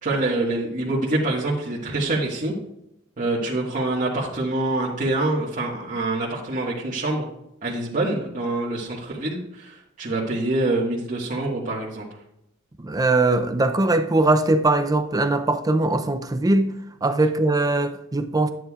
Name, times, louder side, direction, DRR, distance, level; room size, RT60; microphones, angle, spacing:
voice 1, 0.0-2.5 3.2-7.3 7.6-12.1, right 2 dB, 40° right, 1.6 m, -25 dB
voice 2, 12.8-16.7 17.0-18.5, right 2 dB, 20° right, 0.5 m, -21 dB
11.0 x 9.2 x 2.4 m
head